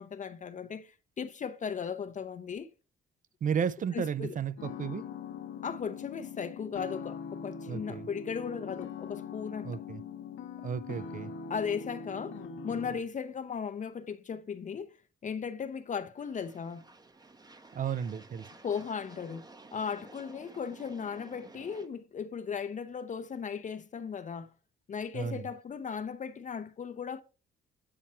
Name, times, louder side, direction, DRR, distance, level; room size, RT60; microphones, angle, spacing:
voice 1, 0.0-2.7 3.9-4.4 5.6-9.8 11.5-14.9 15.2-16.8 18.6-19.5 19.7-24.5 24.9-27.2, left 6 dB, 40° left, 0.6 m, -37 dB
voice 2, 3.4-5.1 7.7-8.1 9.6-10.0 10.6-11.3 17.7-18.5 25.1-25.4, right 7 dB, 40° right, 0.4 m, -33 dB
sound 1, 4.6-13.0, left 5 dB, 70° left, 1.0 m, -42 dB
sound 2, 16.2-21.9, right 3 dB, 20° right, 0.8 m, -53 dB
8.6 x 4.5 x 4.2 m
cardioid pair, 90°, 20 cm